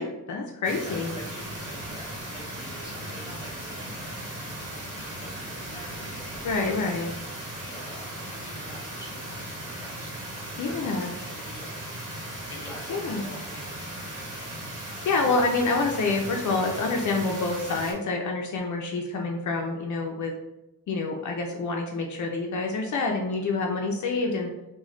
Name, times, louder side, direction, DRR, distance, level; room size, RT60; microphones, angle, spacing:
voice 1, 0.0-1.2 6.4-7.1 10.6-11.1 12.9-13.2 15.0-20.3 20.9-24.5, left 3 dB, 65° left, 1 dB, 0.5 m, -27 dB
sound 1, 0.6-17.9, right 1 dB, 70° right, 1.1 m, -37 dB
voice 2, 0.7-4.3 5.0-6.8 7.6-13.8, left 1 dB, 10° left, -3 dB, 1.1 m, -46 dB
sound 2, 1.4-7.3, right 1 dB, 10° right, 1.5 m, -47 dB
3.2 x 2.2 x 3.6 m, 0.93 s
wide cardioid pair, 115°, 32 cm